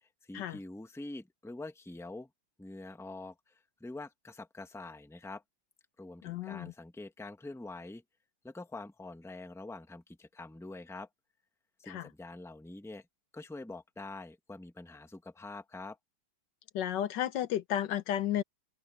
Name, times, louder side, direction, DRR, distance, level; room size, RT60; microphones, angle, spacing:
voice 1, 0.0-2.3 2.6-3.5 3.8-5.4 6.0-8.0 8.4-11.1 11.8-13.0 13.3-16.0, left 2 dB, ahead, 1.3 m, -45 dB
voice 2, 6.2-6.7 11.8-12.1 16.7-18.4, left 11 dB, 65° left, 1.3 m, -33 dB
omnidirectional pair, 2.2 m